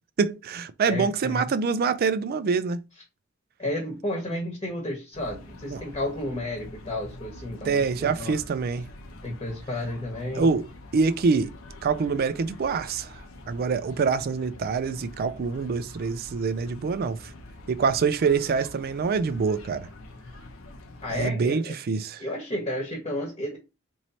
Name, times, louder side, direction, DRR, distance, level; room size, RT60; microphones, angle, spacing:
voice 1, 0.2-2.8 5.7-5.8 7.6-8.9 10.4-10.7 10.9-11.5 11.8-13.1 13.5-17.2 17.7-19.9 21.1-22.2, right 5 dB, 45° right, 0.3 m, -25 dB
voice 2, 0.9-1.5 3.6-8.4 9.2-10.6 21.0-21.8 22.2-23.6, left 1 dB, 25° left, 1.0 m, -32 dB
sound 1, 5.1-21.3, left 1 dB, 70° left, 0.7 m, -45 dB
3.1 x 2.7 x 4.2 m
head